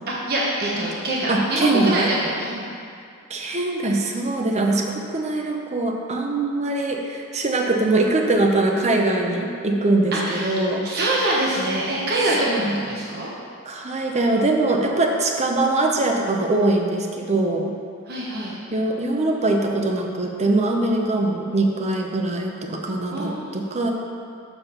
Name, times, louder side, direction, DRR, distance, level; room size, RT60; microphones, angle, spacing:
voice 1, 0.1-2.7 10.1-13.3 18.1-18.5 23.1-23.6, right 1 dB, 50° right, -5 dB, 1.1 m, -25 dB
voice 2, 1.3-2.1 3.3-11.0 12.5-12.8 13.6-17.7 18.7-23.9, right 2 dB, 30° right, 1 dB, 0.7 m, -22 dB
7.1 x 5.3 x 5.6 m, 2.4 s
head